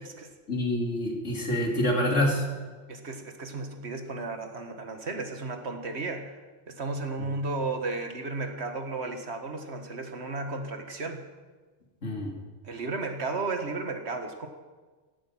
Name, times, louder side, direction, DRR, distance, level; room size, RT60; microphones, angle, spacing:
voice 1, 0.5-2.4 12.0-12.3, left 1 dB, 75° left, 0 dB, 3.3 m, -26 dB
voice 2, 1.6-2.0 2.9-6.4 6.7-11.3 12.6-14.5, right 3 dB, 60° right, 5 dB, 1.8 m, -34 dB
16.5 x 10.5 x 7.4 m, 1.4 s
omnidirectional pair, 1.3 m